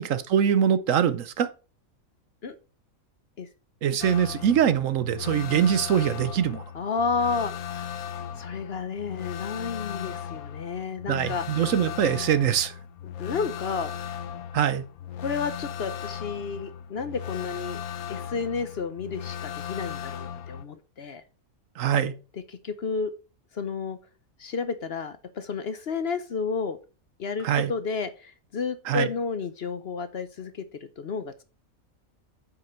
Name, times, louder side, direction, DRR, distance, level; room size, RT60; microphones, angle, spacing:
voice 1, 0.0-1.5 3.8-6.6 11.1-12.7 14.5-14.8 21.8-22.1 27.4-27.7 28.9-29.1, right 9 dB, 65° right, 1.1 m, -23 dB
sound 1, 4.0-20.6, left 9 dB, 85° left, 1.2 m, -37 dB
voice 2, 6.7-7.9 8.4-11.7 13.2-13.9 15.2-17.8 18.1-21.2 22.3-23.1 23.5-24.0 24.4-26.8 27.2-30.7 31.0-31.4, left 5 dB, 50° left, 0.9 m, -31 dB
9.7 x 5.9 x 4.4 m
omnidirectional pair, 1.5 m